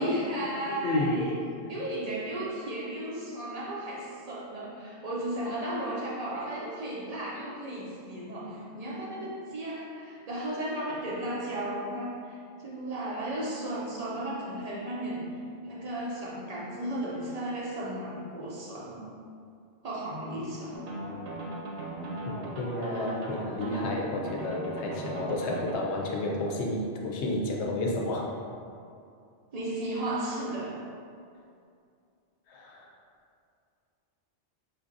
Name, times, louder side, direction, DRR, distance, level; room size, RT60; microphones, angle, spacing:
voice 1, 0.0-1.4 1.7-15.3 15.6-19.0 19.8-20.9 29.5-30.8, right 1 dB, 50° right, -5 dB, 0.5 m, -34 dB
voice 2, 0.7-1.2 22.3-28.3 32.5-32.9, left 1 dB, 75° left, -1 dB, 0.8 m, -31 dB
sound 1, 20.7-25.7, right 1 dB, 75° right, 1.0 m, -38 dB
4.6 x 2.5 x 2.5 m, 2.4 s
omnidirectional pair, 1.2 m